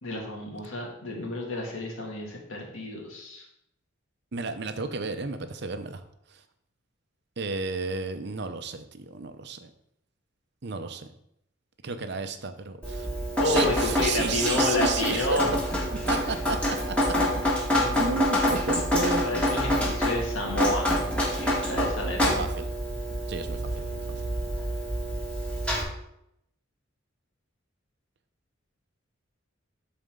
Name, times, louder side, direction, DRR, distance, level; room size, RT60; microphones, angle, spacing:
voice 1, 0.0-3.4 13.4-15.5 17.7-18.2 19.2-22.3, left 2 dB, 85° left, -1 dB, 2.2 m, -30 dB
voice 2, 4.3-6.0 6.3-6.4 7.4-9.7 10.6-11.1 11.8-13.1 13.4-15.4 16.1-17.1 18.0-19.2 22.4-22.7 23.3-23.8, right 4 dB, 55° right, 9 dB, 0.7 m, -32 dB
Drip, 12.8-25.8, equal, 5° left, 1.9 m, -27 dB
12.5 x 4.3 x 3.8 m, 0.77 s
head